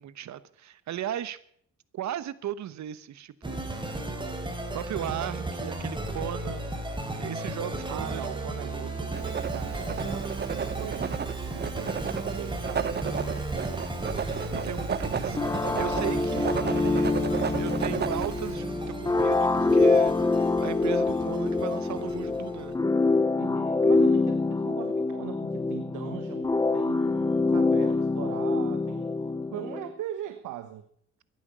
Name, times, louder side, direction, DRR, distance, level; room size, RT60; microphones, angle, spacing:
voice 1, 0.0-1.4 1.9-3.8 4.7-8.5 14.2-17.1 17.6-22.8, right 11 dB, 65° right, 16 dB, 1.1 m, -37 dB
sound 1, 3.4-22.7, right 2 dB, 15° right, 3.2 m, -35 dB
voice 2, 7.9-12.0 12.3-13.5 15.9-18.1 23.4-29.1 29.5-30.8, right 12 dB, 85° right, 9 dB, 1.2 m, -41 dB
Writing, 9.1-18.5, right 7 dB, 35° right, 0.7 m, -33 dB
sound 2, 15.4-29.9, left 3 dB, 10° left, 0.6 m, -25 dB
15.0 x 11.0 x 6.3 m, 0.64 s
cardioid pair, 90°, 30 cm